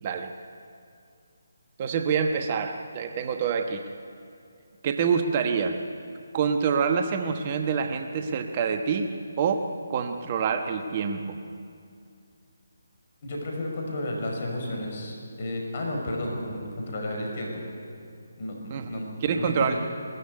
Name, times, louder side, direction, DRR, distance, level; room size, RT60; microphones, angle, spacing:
voice 1, 0.0-0.3 1.8-3.8 4.8-5.8 6.3-11.4 18.7-18.9 19.2-19.7, right 6 dB, 30° right, 6 dB, 1.1 m, -26 dB
voice 2, 13.2-17.6 18.4-18.6 18.9-19.7, left 1 dB, 40° left, 0 dB, 5.6 m, -32 dB
21.5 x 13.5 x 9.8 m, 2.4 s
figure-of-eight pair, 145°, 0 cm